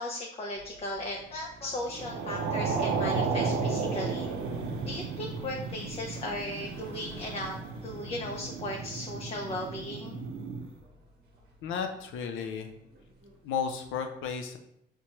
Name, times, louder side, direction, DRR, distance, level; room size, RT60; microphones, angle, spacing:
voice 1, 0.0-4.3 4.8-7.6 7.8-10.2, left 1 dB, 30° left, 0 dB, 0.5 m, -37 dB
sound 1, 0.6-13.7, right 1 dB, 50° right, 0.8 m, -49 dB
sound 2, 1.9-10.7, right 4 dB, 75° right, 0.5 m, -33 dB
voice 2, 11.6-12.7 13.4-14.6, left 6 dB, 80° left, 6 dB, 0.5 m, -33 dB
4.4 x 2.2 x 2.9 m, 0.77 s
cardioid pair, 90°, 20 cm